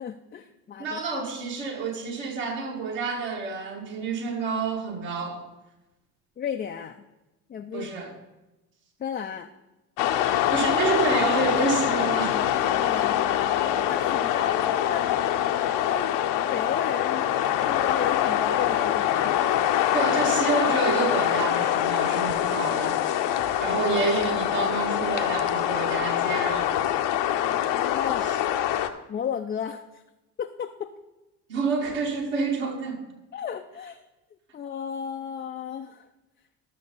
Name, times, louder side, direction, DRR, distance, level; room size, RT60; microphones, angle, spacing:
voice 1, 0.0-1.0 6.4-7.0 7.5-7.9 9.0-9.5 12.7-13.3 13.8-15.1 15.8-16.2 16.5-17.3 17.6-19.4 27.7-28.4 29.1-30.0 30.4-30.9 33.3-34.0 34.5-36.1, left 8 dB, 20° left, 4 dB, 0.4 m, -33 dB
voice 2, 0.8-5.4 7.7-8.1 10.5-12.4 19.9-23.0 23.6-27.0 28.2-28.4 31.5-33.0, right 4 dB, 60° right, 0 dB, 2.3 m, -28 dB
sound 1, 10.0-28.9, left 11 dB, 60° left, 0.8 m, -24 dB
13.0 x 6.6 x 3.9 m, 1.0 s
hypercardioid pair, 55°, 49 cm